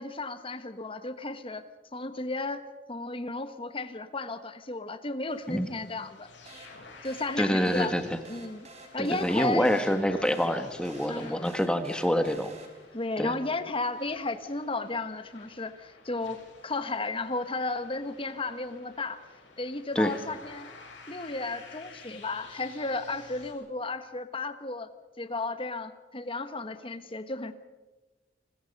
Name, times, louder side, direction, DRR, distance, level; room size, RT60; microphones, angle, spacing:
voice 1, 0.0-1.6 1.9-6.3 7.0-7.9 8.3-8.7 8.9-9.7 11.1-11.5 12.9-19.2 19.6-20.7 21.1-24.9 25.2-27.5, left 2 dB, 30° left, 10 dB, 1.4 m, -34 dB
sound 1, 5.3-23.5, left 4 dB, 85° left, 7.2 m, -51 dB
sound 2, 6.5-13.1, right 3 dB, 40° right, 3.9 m, -51 dB
voice 2, 7.4-8.2 9.0-12.5 13.2-13.3 19.9-20.1, equal, 5° left, 8 dB, 1.4 m, -26 dB
29.5 x 21.5 x 5.4 m, 1.2 s
head